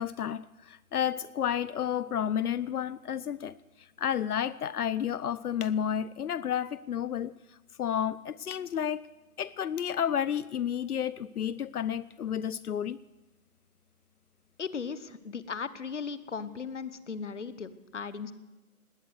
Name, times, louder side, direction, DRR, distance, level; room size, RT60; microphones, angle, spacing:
voice 1, 0.0-9.1 9.4-13.0, left 9 dB, 90° left, 18 dB, 0.6 m, -31 dB
voice 2, 14.6-18.3, left 5 dB, 55° left, 14 dB, 1.1 m, -37 dB
19.0 x 9.1 x 7.9 m, 1.1 s
figure-of-eight pair, 160°, 44 cm